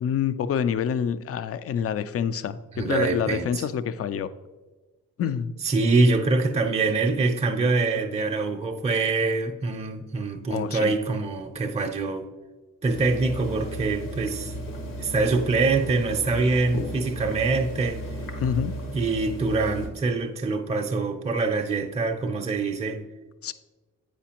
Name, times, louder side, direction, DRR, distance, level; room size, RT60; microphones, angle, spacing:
voice 1, 0.0-4.3 5.2-5.5 10.5-11.0 18.4-18.7 23.4-23.5, left 8 dB, 45° left, 14 dB, 0.4 m, -27 dB
voice 2, 2.8-3.7 5.6-12.3 12.8-14.5 15.0-18.0 18.9-23.0, right 3 dB, 20° right, 3 dB, 0.6 m, -24 dB
sound 1, 12.9-19.9, equal, 70° left, 1.2 m, -35 dB
8.2 x 5.1 x 2.9 m, 1.2 s
cardioid pair, 65°, 33 cm